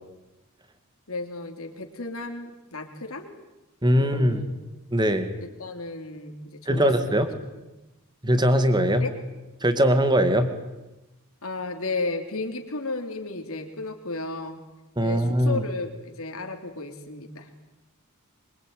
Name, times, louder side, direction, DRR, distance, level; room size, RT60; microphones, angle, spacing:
voice 1, 1.1-3.3 4.0-4.6 5.4-7.3 9.0-9.1 11.4-14.6 15.0-17.5, left 3 dB, 70° left, 4 dB, 3.3 m, -34 dB
voice 2, 3.8-4.4 4.9-5.3 6.7-7.3 8.2-9.1 9.6-10.5 15.0-15.6, equal, 20° right, 9 dB, 2.3 m, -21 dB
25.0 x 23.5 x 9.4 m, 1.0 s
head